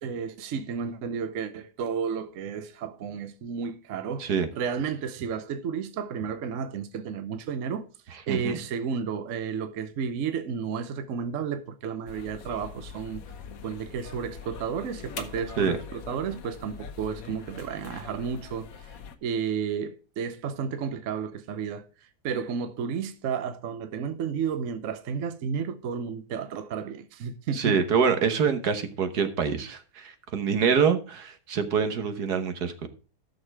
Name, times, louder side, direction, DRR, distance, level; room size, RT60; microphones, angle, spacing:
voice 1, 0.0-7.9 8.3-13.2 13.6-27.8, right 6 dB, 60° right, 1.1 m, -32 dB
sound 1, 12.1-19.2, left 6 dB, 65° left, 1.3 m, -43 dB
voice 2, 27.5-32.9, right 6 dB, 80° right, 1.7 m, -25 dB
12.5 x 6.5 x 4.6 m
omnidirectional pair, 1.7 m